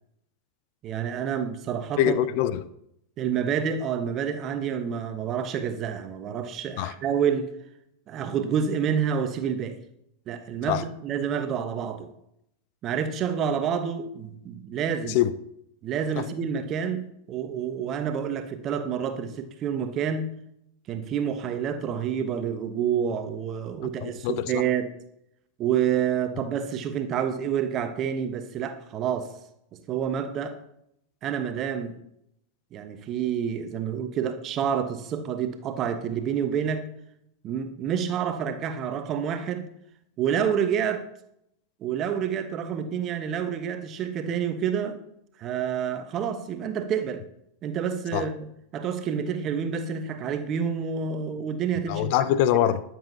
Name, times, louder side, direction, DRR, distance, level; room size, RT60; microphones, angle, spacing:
voice 1, 0.8-2.2 3.2-7.5 8.1-9.8 10.3-12.1 12.8-15.2 15.8-20.3 20.9-25.0 25.6-29.3 29.9-30.6 31.2-32.0 32.7-36.8 37.4-39.7 40.2-41.1 41.8-45.0 45.4-47.2 47.6-48.5 48.7-52.1, right 8 dB, 30° right, 1.2 m, -28 dB
voice 2, 2.0-2.6 6.8-6.9 10.7-10.8 15.1-15.3 24.0-24.6 48.1-48.3 51.9-52.8, left 11 dB, 45° left, 0.6 m, -24 dB
21.0 x 7.5 x 2.9 m
figure-of-eight pair, 90°, 0 cm